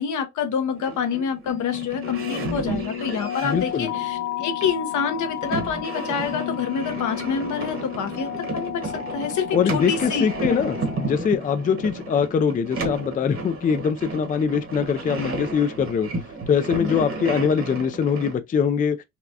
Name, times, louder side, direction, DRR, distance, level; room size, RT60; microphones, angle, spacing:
voice 1, 0.0-10.3 10.6-10.7 16.8-17.0, left 6 dB, 75° left, 0.9 m, -27 dB
sound 1, 0.7-18.3, right 3 dB, 45° right, 1.3 m, -33 dB
sound 2, 1.5-11.1, left 11 dB, 60° left, 1.1 m, -32 dB
voice 2, 3.4-3.9 9.5-16.1 16.5-19.0, left 7 dB, 30° left, 0.4 m, -23 dB
4.1 x 2.2 x 2.7 m
cardioid pair, 90°, 30 cm